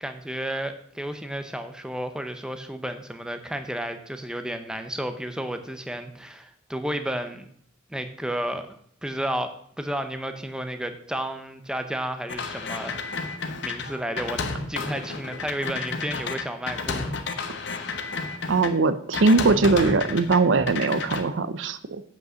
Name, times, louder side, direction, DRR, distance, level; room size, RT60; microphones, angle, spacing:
voice 1, 0.0-7.4 7.9-8.8 9.0-13.0 13.6-17.1, right 1 dB, 5° right, 8 dB, 0.6 m, -32 dB
sound 1, 12.3-18.7 19.1-20.4 20.7-21.2, left 4 dB, 60° left, 0.9 m, -31 dB
voice 2, 18.5-22.0, right 3 dB, 65° right, 13 dB, 0.6 m, -21 dB
8.2 x 5.3 x 6.2 m, 0.65 s
head